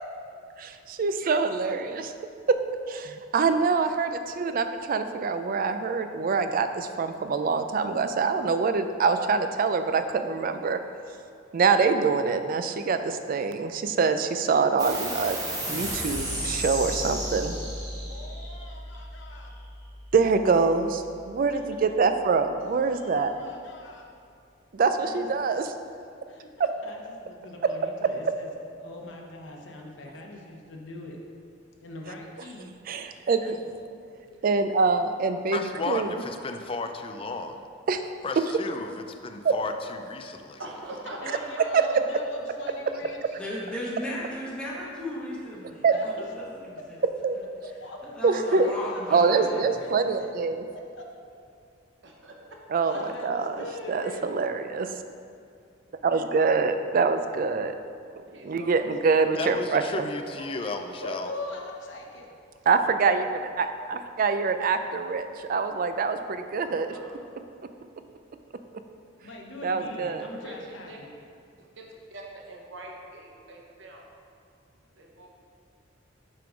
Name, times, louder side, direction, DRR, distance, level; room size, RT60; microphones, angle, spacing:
voice 1, 0.6-2.1 2.5-2.6 2.9-4.1 4.4-10.8 11.5-15.4 15.7-17.6 20.1-23.3 24.7-25.6 26.6-26.7 32.9-33.5 34.4-35.6 35.9-36.1 37.9-38.0 39.4-39.5 41.7-41.9 45.8-45.9 47.2-47.4 48.2-48.7 49.1-50.7 52.7-53.6 53.9-54.9 56.0-57.7 58.4-60.1 62.7-67.0 69.6-70.3, right 4 dB, 45° right, 9 dB, 0.4 m, -25 dB
sound 1, 14.8-21.7, right 1 dB, 20° right, 1.2 m, -34 dB
voice 2, 18.1-19.6 21.5-21.6 22.6-24.1 25.0-25.3 26.3-28.5 28.8-31.2 31.8-32.7 34.3-34.4 41.2-43.4 45.9-46.1 46.8-46.9 47.6-49.9 50.7-51.1 52.8-54.2 61.0-62.3 69.2-71.1, left 2 dB, 70° left, 0 dB, 1.0 m, -41 dB
voice 3, 35.5-37.7 38.2-40.6 59.4-61.3, left 3 dB, 30° left, 6 dB, 0.4 m, -34 dB
voice 4, 40.6-41.6 52.0-52.3 52.9-53.0 58.3-58.9 60.3-61.0 66.6-67.2 70.4-71.0 71.6-74.1 75.0-75.3, right 1 dB, 70° right, 0 dB, 1.0 m, -43 dB
voice 5, 43.4-47.0 47.3-47.4 48.0-49.7 50.1-50.2, left 1 dB, 5° left, -7 dB, 1.1 m, -36 dB
7.5 x 3.7 x 5.0 m, 2.4 s
head